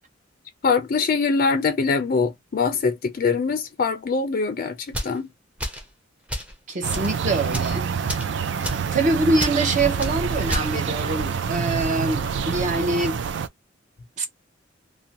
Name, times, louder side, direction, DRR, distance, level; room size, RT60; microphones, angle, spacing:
voice 1, 0.6-4.8 5.0-5.3, left 4 dB, 45° left, 0.4 m, -23 dB
Paper Unfolding Quickly, 4.9-5.2 5.6-5.9 6.3-6.5 6.9-7.1 7.5-7.7 8.1-8.3 8.6-8.9 9.4-9.6 10.0-10.1 10.5-10.7, equal, 5° right, 0.6 m, -30 dB
voice 2, 6.7-7.9 8.9-13.2 14.2-14.3, right 2 dB, 40° right, 0.7 m, -24 dB
sound 1, 6.8-13.5, right 6 dB, 65° right, 0.4 m, -27 dB
2.5 x 2.1 x 2.7 m
head